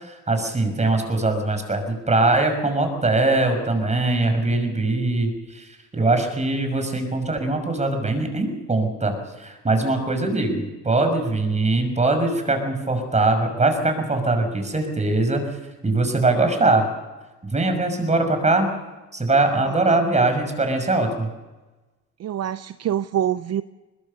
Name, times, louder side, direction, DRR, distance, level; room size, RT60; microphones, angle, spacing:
voice 1, 0.0-15.5 15.8-16.9 17.5-18.7 19.1-21.3, right 2 dB, 25° right, 6 dB, 6.0 m, -22 dB
voice 2, 19.6-20.0 22.2-23.6, right 10 dB, 60° right, 13 dB, 0.7 m, -26 dB
21.5 x 20.5 x 6.8 m, 1.2 s
cardioid pair, 90°, 30 cm